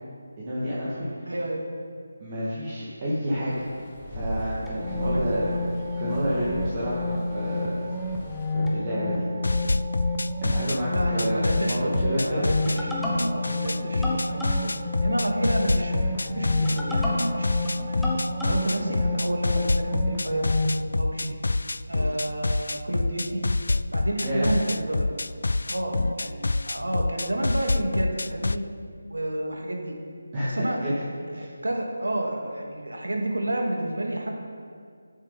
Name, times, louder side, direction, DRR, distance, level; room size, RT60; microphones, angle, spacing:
voice 1, 0.4-1.1 2.2-3.6 4.1-5.4 6.0-7.7 8.5-9.3 10.4-12.4 24.2-24.5 30.3-30.9 31.3-31.5, equal, 30° right, -9 dB, 2.3 m, -29 dB
voice 2, 1.3-1.6 5.0-5.7 10.9-18.1 18.4-20.5 21.0-21.4 21.9-23.5 23.9-25.3 25.7-28.7 29.1-30.0 30.4-31.0 31.3-34.4, right 1 dB, 85° right, 1 dB, 2.2 m, -30 dB
sound 1, 3.5-8.5, left 1 dB, 25° left, 1.6 m, -37 dB
sound 2, 4.7-20.8, left 1 dB, ahead, 1.1 m, -29 dB
sound 3, 9.4-12.8 13.2-28.6, left 2 dB, 70° left, 0.3 m, -27 dB
14.0 x 7.9 x 4.2 m, 2.2 s
figure-of-eight pair, 160°, 0 cm